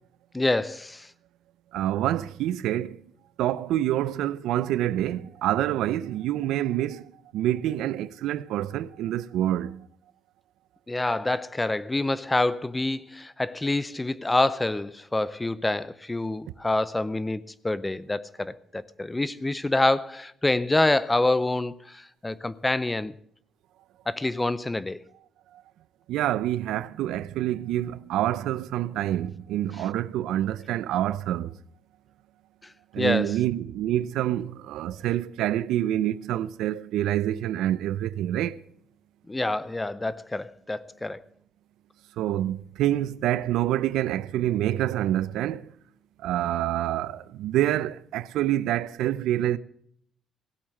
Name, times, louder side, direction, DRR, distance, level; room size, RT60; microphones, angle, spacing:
voice 1, 0.3-1.1 10.9-23.1 24.1-25.0 33.0-33.3 39.3-41.2, left 2 dB, 10° left, 0.6 m, -26 dB
voice 2, 1.7-3.0 3.4-9.9 26.1-31.6 32.9-38.6 42.2-45.7 46.2-49.6, right 12 dB, 85° right, 0.6 m, -27 dB
17.0 x 8.7 x 6.5 m
cardioid pair, 135°, 0 cm